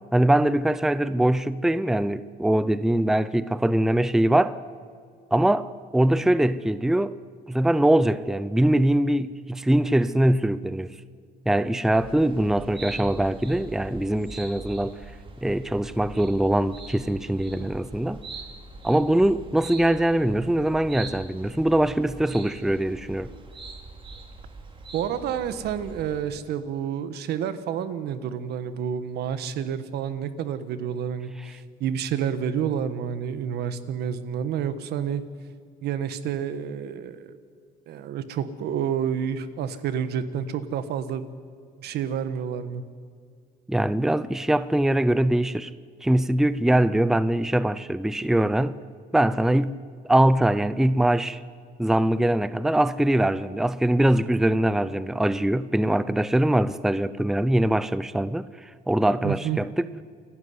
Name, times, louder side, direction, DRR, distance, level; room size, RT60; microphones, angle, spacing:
voice 1, 0.1-4.6 5.3-7.1 7.5-10.9 11.5-15.0 15.4-18.2 18.8-23.3 43.7-45.7 46.0-48.8 49.1-49.8 50.0-51.4 51.8-58.5 58.9-59.9, right 1 dB, 5° right, 0.6 m, -22 dB
sound 1, 12.0-26.2, right 3 dB, 30° right, 2.9 m, -42 dB
voice 2, 24.9-35.2 35.8-37.4 37.9-41.2 41.8-42.8 59.2-59.6, right 8 dB, 75° right, 1.5 m, -29 dB
28.5 x 12.5 x 9.7 m
cardioid pair, 110°, 17 cm